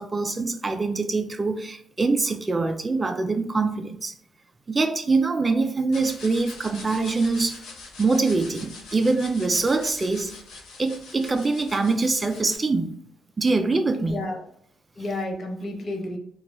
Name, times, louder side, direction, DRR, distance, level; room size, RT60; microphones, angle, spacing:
voice 1, 0.0-4.1 4.7-7.6 8.0-10.3 10.8-12.9 13.4-14.2, right 3 dB, 25° right, 0.3 m, -24 dB
sound 1, 5.9-12.6, left 3 dB, 80° left, 0.7 m, -43 dB
voice 2, 14.0-14.4 15.0-16.2, left 1 dB, 45° left, 0.8 m, -31 dB
3.0 x 2.2 x 2.3 m
cardioid pair, 90°, 0 cm